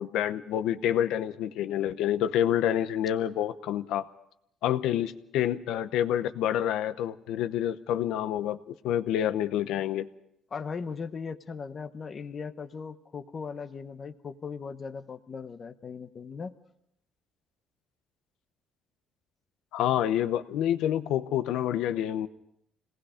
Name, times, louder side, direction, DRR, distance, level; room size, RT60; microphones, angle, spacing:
voice 1, 0.0-4.1 4.6-10.1 19.7-22.3, left 11 dB, 75° left, 11 dB, 0.9 m, -28 dB
voice 2, 10.5-16.5, left 5 dB, 25° left, 8 dB, 0.9 m, -38 dB
27.0 x 19.0 x 5.1 m, 0.76 s
cardioid pair, 175°, 0 cm